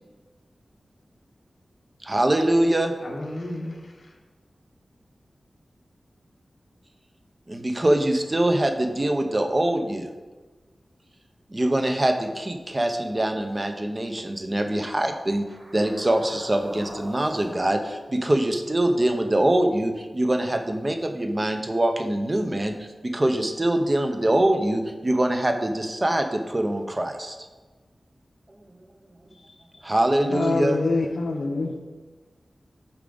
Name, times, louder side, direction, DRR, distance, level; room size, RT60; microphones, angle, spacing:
voice 1, 2.0-2.9 7.5-10.1 11.5-15.5 15.7-27.4 29.8-30.8, right 1 dB, 30° right, 5 dB, 0.7 m, -23 dB
voice 2, 3.0-4.1 29.3-29.8 30.5-31.1, left 1 dB, 45° left, -1 dB, 1.3 m, -36 dB
sound 1, 15.3-19.7, right 1 dB, 70° right, 1.6 m, -44 dB
voice 3, 30.2-31.8, left 3 dB, 75° left, 0 dB, 0.6 m, -25 dB
8.5 x 4.7 x 3.9 m, 1.3 s
wide cardioid pair, 100°, 0 cm